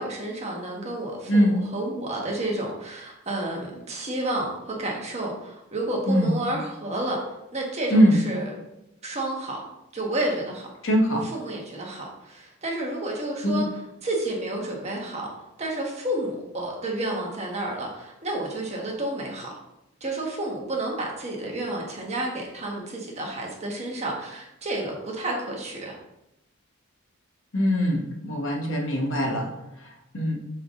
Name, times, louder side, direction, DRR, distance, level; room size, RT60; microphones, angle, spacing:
voice 1, 0.0-7.2 7.5-8.5 9.0-9.6 9.9-10.7 11.1-15.3 15.6-19.6 20.0-25.9, right 1 dB, 30° right, -1 dB, 1.2 m, -30 dB
voice 2, 10.8-11.2 13.4-13.6 27.5-29.5 30.1-30.4, equal, 65° left, 1 dB, 1.1 m, -21 dB
6.9 x 3.8 x 3.7 m, 0.87 s
head